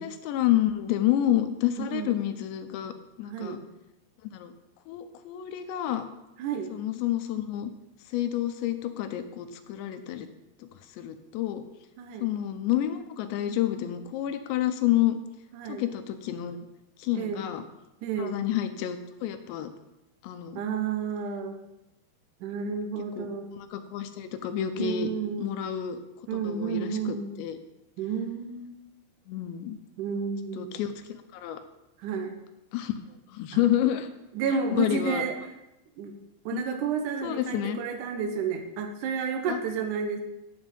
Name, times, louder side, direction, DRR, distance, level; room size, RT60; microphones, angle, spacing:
voice 1, 0.0-3.6 4.2-4.5 4.9-6.1 6.7-7.7 8.1-10.3 10.6-10.7 10.9-11.6 12.2-15.2 15.7-16.6 17.0-17.6 18.2-19.7 20.2-20.6 23.2-25.1 25.4-26.0 26.3-27.6 29.3-29.8 30.6-31.6 32.7-32.9 33.3-34.1 34.5-35.3 36.5-36.7 37.2-37.8 39.5-39.6, left 12 dB, 80° left, 8 dB, 2.9 m, -29 dB
voice 2, 1.8-2.2 3.3-3.6 6.4-6.7 12.0-12.3 15.5-15.8 17.1-17.4 18.0-18.4 20.5-21.6 22.4-23.5 24.8-25.5 26.3-27.4 28.0-28.9 30.0-30.8 32.0-32.4 33.5-33.6 34.4-35.3 36.0-36.1 36.5-40.2, right 6 dB, 75° right, 4 dB, 1.9 m, -31 dB
9.3 x 8.0 x 5.2 m, 0.90 s
omnidirectional pair, 5.1 m